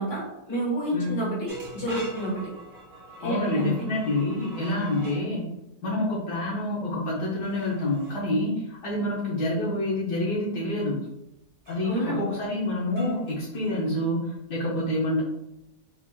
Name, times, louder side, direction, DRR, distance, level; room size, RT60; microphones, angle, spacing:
voice 1, 0.0-2.5 3.2-3.8 11.8-12.2, right 1 dB, 45° left, -6 dB, 1.7 m, -29 dB
voice 2, 0.9-1.3 3.2-5.4 5.8-11.0 11.7-15.2, left 1 dB, 80° left, -6 dB, 1.4 m, -27 dB
sound 1, 1.5-5.3 7.4-8.2 11.6-12.0 12.9-14.0, right 1 dB, 40° right, 1.2 m, -43 dB
4.8 x 2.8 x 2.2 m, 0.88 s
omnidirectional pair, 1.8 m